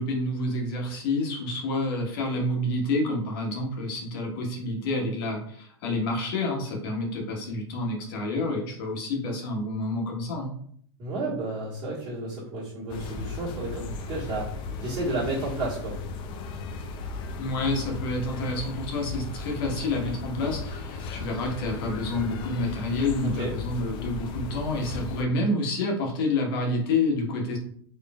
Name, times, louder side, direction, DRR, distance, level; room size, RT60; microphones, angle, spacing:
voice 1, 0.0-10.5 17.4-27.6, left 2 dB, 55° left, 0 dB, 1.3 m, -28 dB
voice 2, 11.0-14.5 14.8-16.0 23.3-23.5, right 2 dB, 35° right, -9 dB, 1.4 m, -31 dB
sound 1, 12.9-25.2, left 4 dB, 35° left, 0.5 m, -36 dB
4.1 x 3.1 x 2.3 m, 0.63 s
hypercardioid pair, 120°, 14 cm